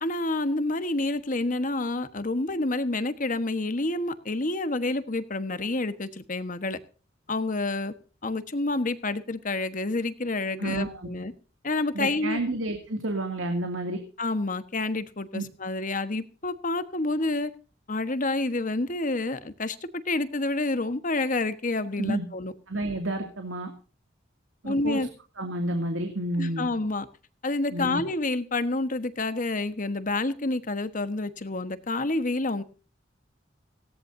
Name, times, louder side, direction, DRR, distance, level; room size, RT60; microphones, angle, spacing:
voice 1, 0.0-6.8 7.3-7.9 8.2-11.3 11.6-12.4 14.2-17.5 17.9-22.5 24.6-25.1 26.4-27.1 27.4-32.6, left 2 dB, 40° left, 11 dB, 1.3 m, -28 dB
voice 2, 10.6-11.1 11.9-14.0 15.3-15.4 22.0-22.3 22.7-23.7 24.6-25.1 25.4-26.7 27.7-28.0, right 1 dB, 85° right, 4 dB, 2.5 m, -30 dB
19.0 x 17.5 x 2.7 m, 0.37 s
head